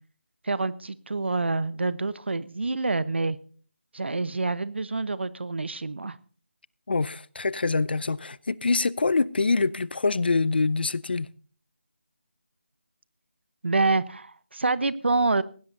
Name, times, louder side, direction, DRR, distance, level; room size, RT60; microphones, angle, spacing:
voice 1, 0.4-3.4 3.9-6.2 13.6-15.4, right 3 dB, 70° right, 1.0 m, -27 dB
voice 2, 6.9-11.3, left 3 dB, 55° left, 0.6 m, -25 dB
20.0 x 16.5 x 2.7 m
figure-of-eight pair, 170°, 6 cm